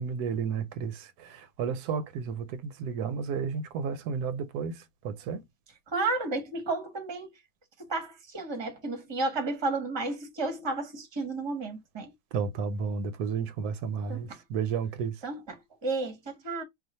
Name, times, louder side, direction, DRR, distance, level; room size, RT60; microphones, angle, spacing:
voice 1, 0.0-5.4 12.3-15.2, right 6 dB, 85° right, 1.1 m, -32 dB
voice 2, 5.9-7.3 7.8-12.1 14.1-14.4 15.2-16.6, right 3 dB, 20° right, 0.8 m, -32 dB
2.4 x 2.4 x 4.0 m
omnidirectional pair, 1.6 m